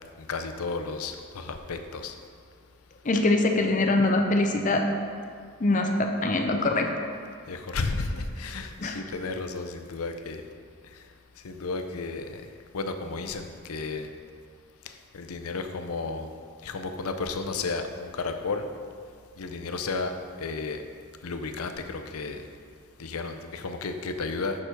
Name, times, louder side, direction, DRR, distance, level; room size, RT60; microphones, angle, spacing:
voice 1, 0.3-2.1 7.5-10.4 11.4-12.4 12.7-14.1 15.1-16.3 16.6-18.7 19.4-20.1 20.4-20.8 21.2-22.4 23.0-24.6, left 3 dB, 80° left, 6 dB, 0.6 m, -33 dB
voice 2, 3.1-4.8 5.6-6.9 8.8-9.0, left 2 dB, 35° left, 4 dB, 0.5 m, -23 dB
6.7 x 6.0 x 4.6 m, 2.1 s
head